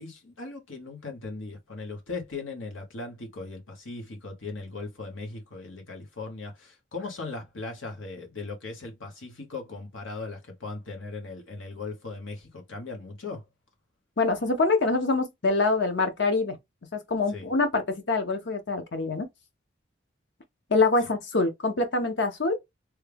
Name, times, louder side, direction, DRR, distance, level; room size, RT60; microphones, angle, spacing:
voice 1, 0.0-13.5 17.3-17.5, left 3 dB, 85° left, 1.3 m, -38 dB
voice 2, 14.2-16.6 16.9-19.3 20.7-22.6, left 3 dB, 65° left, 0.8 m, -25 dB
3.2 x 2.3 x 3.4 m
head